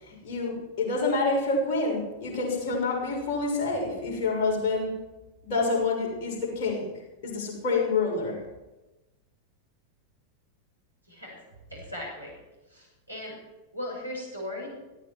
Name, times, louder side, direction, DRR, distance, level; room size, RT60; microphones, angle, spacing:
voice 1, 0.0-4.9 5.4-6.9 7.2-8.4, left 3 dB, 45° left, -2 dB, 6.6 m, -27 dB
voice 2, 11.1-11.4 11.7-12.3 12.7-13.3 13.7-14.7, left 1 dB, 90° right, -2 dB, 6.1 m, -37 dB
18.5 x 15.0 x 4.6 m, 1.0 s
figure-of-eight pair, 90°, 0 cm